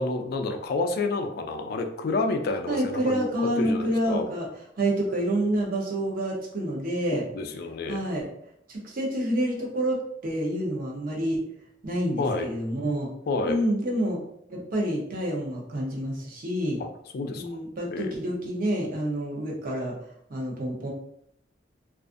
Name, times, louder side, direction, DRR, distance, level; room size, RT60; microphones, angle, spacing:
voice 1, 0.0-3.3 3.6-4.3 7.3-8.0 12.2-12.5 13.3-13.6 16.8-16.9 17.1-17.5 17.9-18.5, left 3 dB, 55° left, 5 dB, 0.3 m, -29 dB
voice 2, 2.7-4.5 4.8-7.2 7.9-8.3 8.7-11.4 11.8-13.1 13.4-14.2 14.5-16.8 17.4-19.9 20.3-20.9, right 1 dB, 50° right, -2 dB, 0.7 m, -28 dB
2.4 x 2.4 x 2.4 m, 0.73 s
head